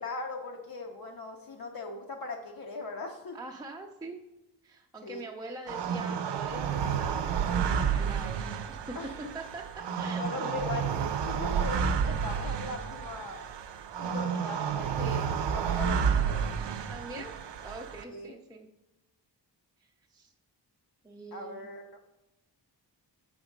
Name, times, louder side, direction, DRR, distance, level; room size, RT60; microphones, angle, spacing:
voice 1, 0.0-3.4 5.0-5.2 9.0-9.1 10.1-10.9 11.3-13.4 14.0-15.2 15.5-16.5 17.2-17.3 18.1-18.3 21.3-22.0, left 3 dB, 55° left, 2 dB, 0.6 m, -39 dB
voice 2, 3.3-4.2 4.6-8.4 8.7-9.0 9.3-10.6 15.0-15.3 16.9-17.3 17.6-18.7 19.8-20.3 21.0-21.7, right 2 dB, 10° right, 2 dB, 0.4 m, -44 dB
sound 1, 5.7-18.0, right 7 dB, 85° right, 0.5 m, -31 dB
6.1 x 3.6 x 5.1 m, 0.97 s
wide cardioid pair, 130°, 41 cm